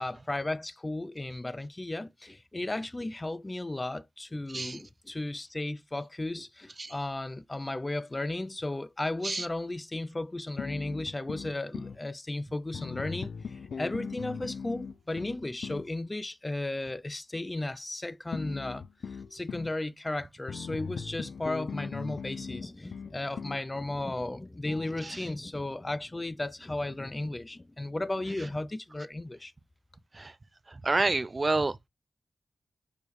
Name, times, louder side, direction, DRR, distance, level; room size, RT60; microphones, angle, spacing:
voice 1, 0.0-18.8 19.3-29.5, left 2 dB, 20° left, 0.4 m, -35 dB
voice 2, 4.5-4.8 6.8-6.9 9.2-9.5 25.0-25.2 30.1-30.3 30.7-31.9, right 3 dB, 35° right, 0.6 m, -29 dB
sound 1, 10.6-12.0 12.7-15.9 18.3-19.7 20.5-23.7, left 6 dB, 85° left, 0.5 m, -39 dB
6.5 x 5.2 x 3.1 m
wide cardioid pair, 100°, 0 cm